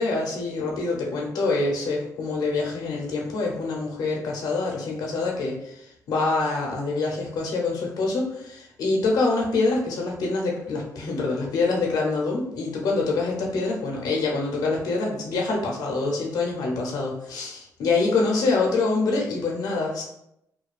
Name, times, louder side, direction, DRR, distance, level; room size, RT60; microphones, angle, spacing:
voice 1, 0.0-20.0, left 3 dB, 85° left, -1 dB, 0.6 m, -25 dB
2.6 x 2.3 x 2.3 m, 0.79 s
cardioid pair, 145°, 6 cm